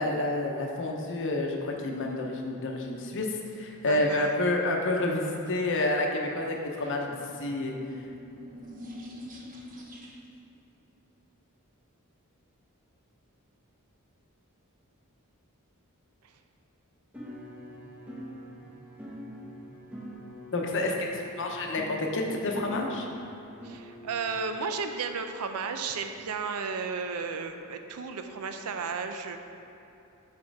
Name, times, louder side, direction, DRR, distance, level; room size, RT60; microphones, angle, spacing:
voice 1, 0.0-3.3 3.6-7.7 20.5-23.1, left 2 dB, 60° left, 1 dB, 0.8 m, -29 dB
voice 2, 3.9-4.4 6.8-7.3 23.6-29.4, right 5 dB, 85° right, 6 dB, 0.5 m, -34 dB
sound 1, 7.6-10.5, left 1 dB, 40° right, 0.8 m, -45 dB
sound 2, 17.1-24.5, equal, 5° right, 0.9 m, -44 dB
6.4 x 4.3 x 4.6 m, 2.9 s
head